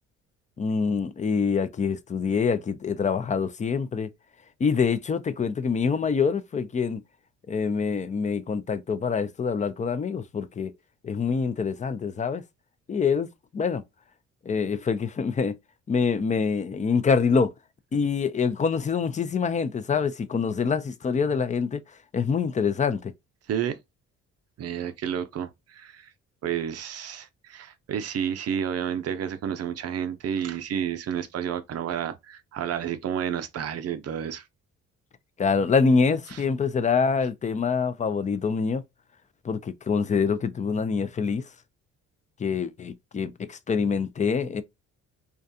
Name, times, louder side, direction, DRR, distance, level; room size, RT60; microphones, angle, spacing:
voice 1, 0.6-4.1 4.6-7.0 7.5-10.7 11.0-12.4 12.9-13.3 13.5-13.8 14.5-15.5 15.9-17.5 17.9-21.8 22.1-23.1 35.4-38.8 39.4-41.4 42.4-44.6, left 5 dB, 25° left, 0.4 m, -25 dB
voice 2, 24.6-26.1 26.4-34.4 36.3-36.4, right 9 dB, 55° right, 0.5 m, -30 dB
2.4 x 2.2 x 2.6 m
cardioid pair, 90°, 30 cm